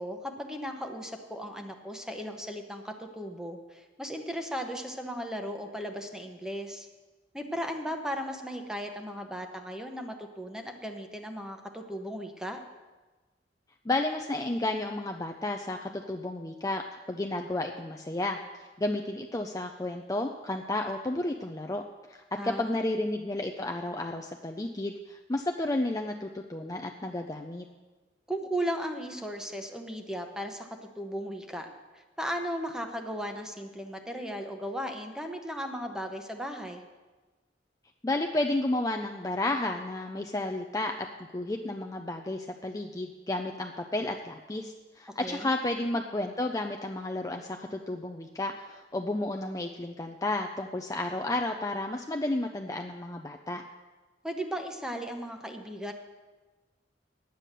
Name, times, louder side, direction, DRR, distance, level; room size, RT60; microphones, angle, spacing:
voice 1, 0.0-6.9 7.3-12.6 22.4-22.8 28.3-31.7 31.9-36.8 45.1-45.5 54.2-55.9, equal, 5° right, 4 dB, 1.0 m, -36 dB
voice 2, 13.8-21.8 22.1-27.6 38.0-53.6, left 2 dB, 20° left, 3 dB, 0.5 m, -32 dB
10.0 x 9.1 x 6.7 m, 1.2 s
head